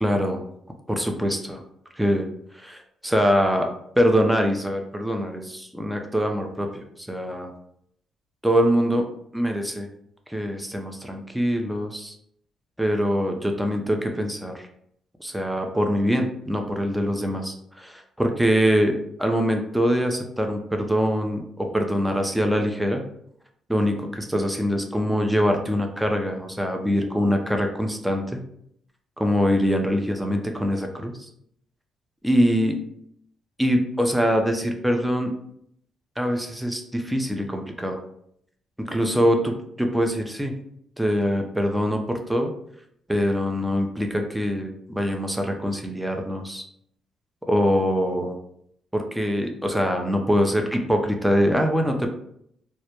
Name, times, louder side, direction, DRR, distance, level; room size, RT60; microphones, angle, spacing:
voice 1, 0.0-0.4 0.9-1.6 2.0-2.2 2.5-7.5 8.4-9.1 9.3-9.9 10.3-12.1 12.8-14.7 15.2-23.0 23.7-28.4 29.2-31.3 32.2-32.8 33.6-35.3 36.2-38.0 38.8-40.5 41.0-42.5 43.1-46.6 47.5-48.4 48.9-52.1, equal, 5° right, 3 dB, 0.4 m, -23 dB
2.1 x 2.0 x 2.8 m, 0.70 s
cardioid pair, 90°, 0 cm